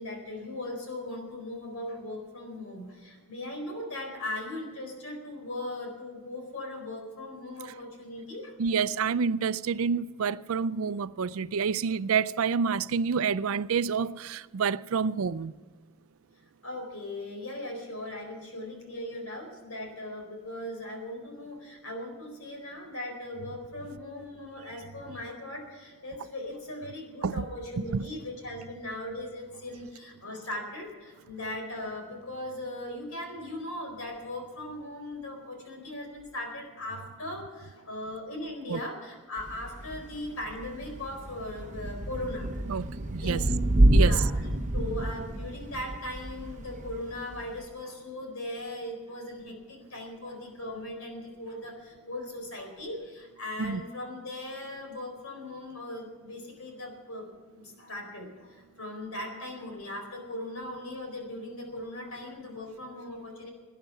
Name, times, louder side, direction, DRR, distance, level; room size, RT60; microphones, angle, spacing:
voice 1, 0.0-8.6 16.6-42.8 43.2-43.5 43.9-57.2 57.5-63.5, left 1 dB, 75° left, 4.2 m, -39 dB
voice 2, 8.6-15.5 27.2-27.3 27.9-28.1 38.7-38.8 42.7-43.4 43.9-44.2 53.6-53.8, right 6 dB, 70° right, 0.4 m, -28 dB
Thunder / Rain, 39.4-47.6, right 1 dB, 35° right, 0.9 m, -28 dB
18.0 x 10.0 x 5.8 m
head